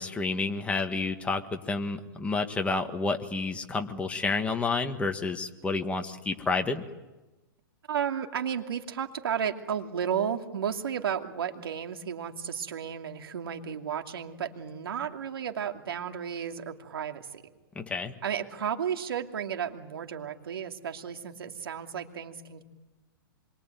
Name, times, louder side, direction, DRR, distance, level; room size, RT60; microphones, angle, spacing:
voice 1, 0.0-6.8 17.8-18.1, left 3 dB, 10° left, 5 dB, 1.6 m, -30 dB
voice 2, 7.9-17.4 18.2-22.6, right 8 dB, 85° right, 4 dB, 2.7 m, -33 dB
26.5 x 22.5 x 9.3 m, 1.1 s
hypercardioid pair, 140°, 12 cm